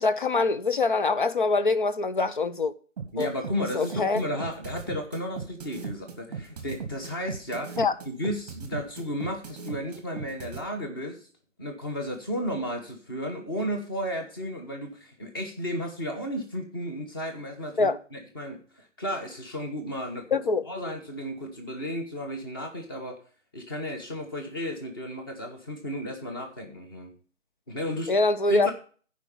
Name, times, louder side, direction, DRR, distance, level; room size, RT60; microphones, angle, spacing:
voice 1, 0.0-2.7 3.2-3.3 3.7-4.2 7.8-7.9 17.8-18.0 20.3-20.6 28.1-28.7, left 3 dB, 40° left, 0.7 m, -24 dB
sound 1, 3.0-10.6, right 6 dB, 10° right, 1.2 m, -37 dB
voice 2, 3.1-7.8 8.0-11.3 11.6-23.2 23.5-27.1 27.7-28.1 28.5-28.7, equal, 20° left, 1.2 m, -33 dB
13.0 x 5.2 x 5.3 m
hypercardioid pair, 170°, 37 cm